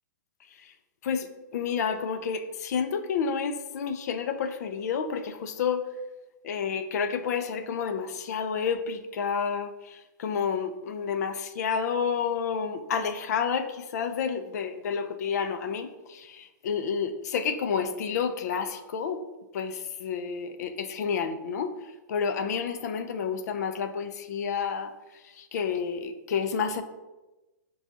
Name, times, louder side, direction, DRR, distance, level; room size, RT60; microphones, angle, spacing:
voice 1, 1.0-5.8 6.4-19.2 19.5-21.7 22.1-24.9 25.2-26.8, left 6 dB, 55° left, 9 dB, 0.4 m, -30 dB
6.0 x 2.3 x 2.6 m, 1.1 s
hypercardioid pair, 150°, 10 cm